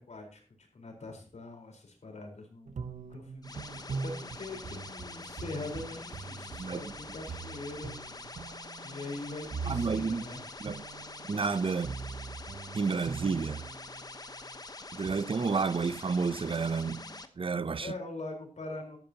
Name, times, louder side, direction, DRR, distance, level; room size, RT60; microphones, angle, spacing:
voice 1, 0.0-2.8 3.1-8.0 8.8-10.4 17.8-19.0, left 2 dB, 70° left, 4.4 m, -42 dB
sound 1, 2.7-14.1 14.8-17.2, right 5 dB, 85° right, 0.8 m, -43 dB
sound 2, 3.4-17.3, left 3 dB, 35° left, 1.0 m, -45 dB
voice 2, 6.6-6.9 9.7-10.2 10.6-10.8 11.3-12.0 12.7-13.6 14.9-17.1 17.4-17.9, right 5 dB, 50° right, 0.6 m, -30 dB
14.5 x 12.0 x 2.9 m
wide cardioid pair, 105°, 12 cm